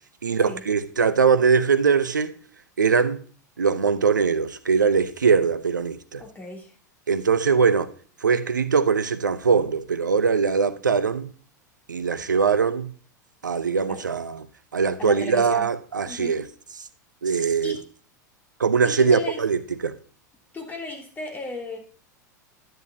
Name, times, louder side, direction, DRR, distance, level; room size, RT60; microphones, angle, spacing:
voice 1, 0.2-2.3 2.8-3.2 3.6-6.2 7.1-7.9 8.2-11.3 11.9-12.9 13.4-14.5 14.7-16.4 17.2-17.8 18.6-19.9, right 5 dB, 85° right, 0.8 m, -21 dB
voice 2, 6.2-6.7 13.9-14.1 15.0-15.7 16.0-16.4 17.6-17.9 18.8-19.4 20.5-21.8, left 3 dB, 20° left, 3.0 m, -35 dB
10.5 x 9.2 x 2.8 m
figure-of-eight pair, 90°, 10 cm